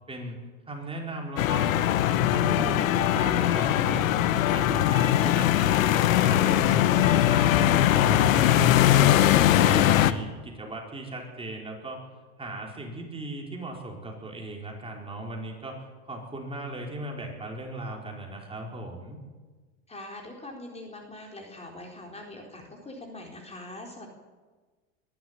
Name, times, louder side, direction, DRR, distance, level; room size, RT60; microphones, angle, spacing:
voice 1, 0.1-0.4 0.7-1.8 2.1-12.0 12.4-19.2, right 2 dB, 15° right, 0 dB, 4.7 m, -37 dB
sound 1, 1.4-10.1, left 12 dB, 85° left, 1.3 m, -21 dB
voice 2, 19.9-24.1, left 1 dB, 15° left, 1 dB, 4.2 m, -42 dB
23.0 x 12.0 x 9.6 m, 1.3 s
supercardioid pair, 120°, 39 cm